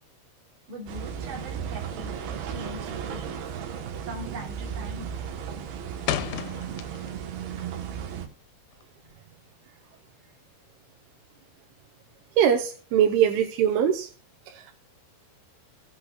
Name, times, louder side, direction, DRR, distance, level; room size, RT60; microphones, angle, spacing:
voice 1, 0.7-2.1 2.5-3.4 4.0-5.1, equal, 45° right, -3 dB, 4.2 m, -41 dB
sound 1, 0.9-8.3, right 8 dB, 70° right, 2.6 m, -35 dB
sound 2, 2.9-3.2 3.5-3.9 4.2-4.7 5.0-7.3 7.6-9.1, left 12 dB, 90° left, 3.2 m, -33 dB
voice 2, 12.4-14.1 14.5-14.8, right 9 dB, 85° right, 4 dB, 3.3 m, -22 dB
17.5 x 8.3 x 2.3 m, 0.36 s
omnidirectional pair, 5.5 m